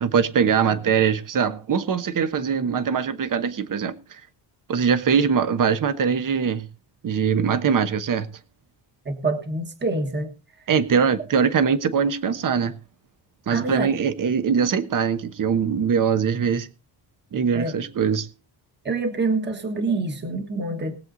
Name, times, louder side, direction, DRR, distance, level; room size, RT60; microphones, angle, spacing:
voice 1, 0.0-4.0 4.7-6.7 7.0-8.3 10.7-12.7 13.5-16.7 17.3-18.3, right 6 dB, 45° right, 1.1 m, -22 dB
voice 2, 9.0-10.3 13.5-13.9 17.5-17.7 18.8-21.0, right 3 dB, 25° right, 1.5 m, -26 dB
20.5 x 7.9 x 3.9 m
wide cardioid pair, 150°, 45 cm